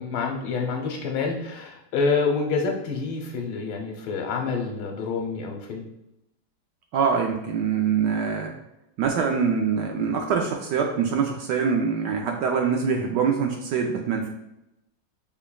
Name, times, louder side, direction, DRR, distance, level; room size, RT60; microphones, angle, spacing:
voice 1, 0.0-5.8, left 4 dB, 80° left, 1 dB, 1.7 m, -27 dB
voice 2, 6.9-8.5 9.0-14.3, right 6 dB, 75° right, 2 dB, 1.0 m, -24 dB
5.9 x 3.4 x 2.3 m, 0.87 s
omnidirectional pair, 2.2 m